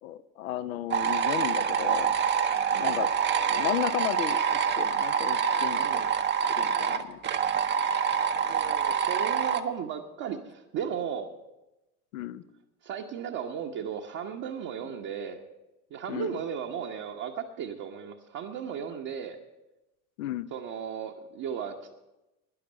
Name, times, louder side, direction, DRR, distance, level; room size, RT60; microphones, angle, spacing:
voice 1, 0.0-2.2 2.8-3.1 3.5-6.0 6.5-7.2 12.1-12.4 14.8-14.9 16.1-16.4 20.2-20.5, left 12 dB, 65° left, 14 dB, 0.7 m, -34 dB
sound 1, 0.9-9.6, right 7 dB, 25° right, 0.8 m, -26 dB
voice 2, 2.7-3.1 5.7-6.1 8.4-11.3 12.8-15.4 15.9-19.4 20.5-21.9, right 8 dB, 45° right, 0 dB, 1.1 m, -35 dB
12.0 x 10.0 x 6.4 m, 0.98 s
figure-of-eight pair, 65°, 43 cm